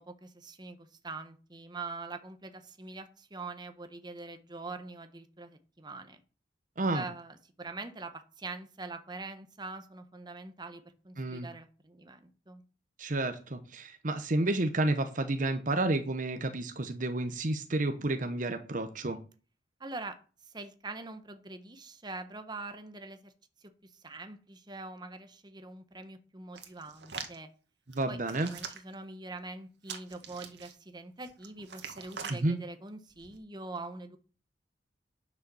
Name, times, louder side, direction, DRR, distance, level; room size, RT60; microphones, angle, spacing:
voice 1, 0.0-6.2 6.9-12.6 19.8-20.2 20.4-23.3 23.6-27.5 28.1-34.2, right 3 dB, 25° right, 8 dB, 1.2 m, -44 dB
voice 2, 11.2-11.5 13.0-19.2 27.9-28.5 32.3-32.6, right 2 dB, 45° right, 7 dB, 1.0 m, -30 dB
Hands, 26.5-27.4 27.9-28.9 29.8-30.7 31.2-32.4 33.1-33.4, right 6 dB, 75° right, 2.0 m, -43 dB
9.8 x 6.7 x 7.0 m, 0.37 s
head